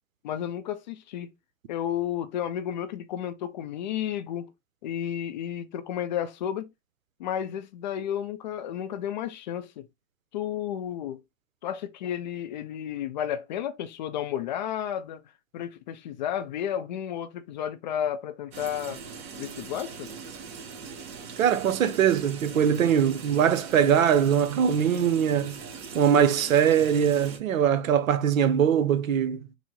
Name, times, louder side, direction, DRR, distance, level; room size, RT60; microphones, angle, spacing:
voice 1, 0.2-1.3 1.7-4.5 4.8-6.7 7.2-9.9 10.3-11.2 11.6-15.2 15.5-19.0 19.4-20.1, left 10 dB, 35° left, 0.4 m, -32 dB
sound 1, 18.5-27.4, right 5 dB, 45° right, 1.5 m, -41 dB
voice 2, 21.4-25.6 25.9-29.5, right 8 dB, 70° right, 0.8 m, -22 dB
6.1 x 2.0 x 3.8 m
hypercardioid pair, 115°, 42 cm